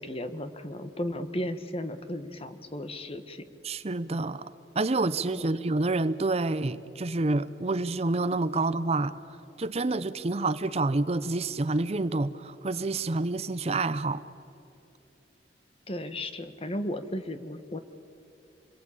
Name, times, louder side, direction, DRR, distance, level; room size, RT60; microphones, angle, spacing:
voice 1, 0.0-3.4 15.9-17.8, left 1 dB, 35° left, 10 dB, 1.3 m, -35 dB
voice 2, 3.6-9.1 9.6-14.2, right 2 dB, 35° right, 14 dB, 0.6 m, -28 dB
27.0 x 21.5 x 8.5 m, 2.8 s
head